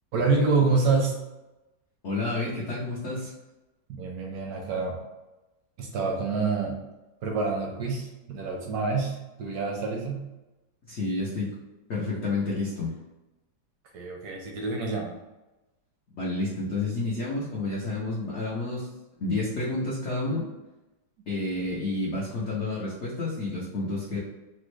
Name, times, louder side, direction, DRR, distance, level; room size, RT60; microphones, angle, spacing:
voice 1, 0.1-1.2 3.9-5.0 5.8-6.8 7.2-10.3 13.9-15.2, right 4 dB, 75° right, 0 dB, 0.9 m, -27 dB
voice 2, 2.0-3.3 10.9-11.5 11.9-12.9 16.1-18.9 19.2-20.5 21.3-24.2, left 2 dB, 85° left, -5 dB, 0.6 m, -30 dB
3.4 x 2.1 x 3.1 m, 1.0 s
omnidirectional pair, 2.0 m